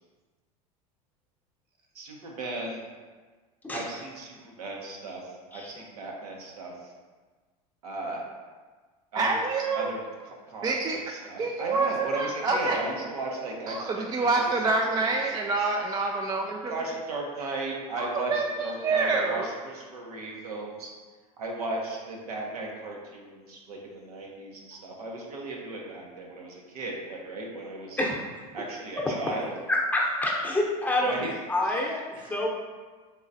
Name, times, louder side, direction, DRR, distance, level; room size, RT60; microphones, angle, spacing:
voice 1, 1.9-2.8 3.7-6.9 7.8-8.2 9.1-9.4 9.7-14.5 15.0-15.5 16.7-20.9 21.4-28.0 28.5-29.5 31.0-32.5, right 2 dB, 80° right, -1 dB, 0.9 m, -36 dB
voice 2, 9.1-9.9 10.6-11.0 11.4-12.8 13.7-16.8 18.0-18.5 18.8-19.5, right 3 dB, 20° right, 1 dB, 0.3 m, -27 dB
voice 3, 29.7-31.1 31.5-32.0 32.3-32.5, left 1 dB, 10° left, -3 dB, 0.8 m, -26 dB
3.9 x 3.9 x 2.6 m, 1.4 s
hypercardioid pair, 90°, 19 cm